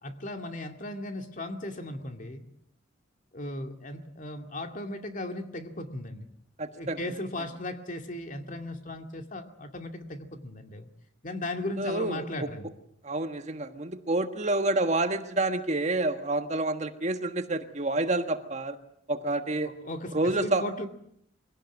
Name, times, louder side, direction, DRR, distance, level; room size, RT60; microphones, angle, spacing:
voice 1, 0.0-2.4 3.3-6.3 6.7-10.9 11.2-12.7 19.6-20.9, left 1 dB, 45° left, 6 dB, 2.3 m, -37 dB
voice 2, 6.6-7.0 11.8-12.5 13.0-18.8 19.1-19.7 20.1-20.6, right 2 dB, 40° right, 8 dB, 1.5 m, -28 dB
23.5 x 17.5 x 9.3 m, 0.72 s
head